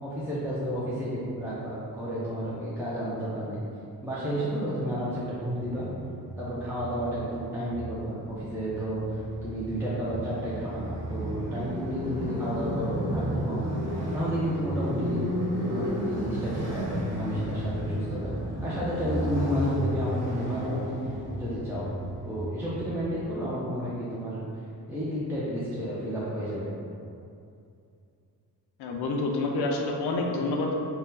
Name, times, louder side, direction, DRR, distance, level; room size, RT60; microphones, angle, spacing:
voice 1, 0.0-3.6 4.0-5.9 6.4-15.2 15.7-18.3 18.6-21.9 22.2-24.4 24.9-26.7, equal, 5° right, -9 dB, 0.3 m, -32 dB
Motorcycle, 5.3-23.5, equal, 40° right, 0.7 m, -33 dB
voice 2, 28.8-30.7, left 2 dB, 85° left, 1 dB, 0.5 m, -28 dB
2.7 x 2.1 x 3.6 m, 2.5 s
wide cardioid pair, 150°, 39 cm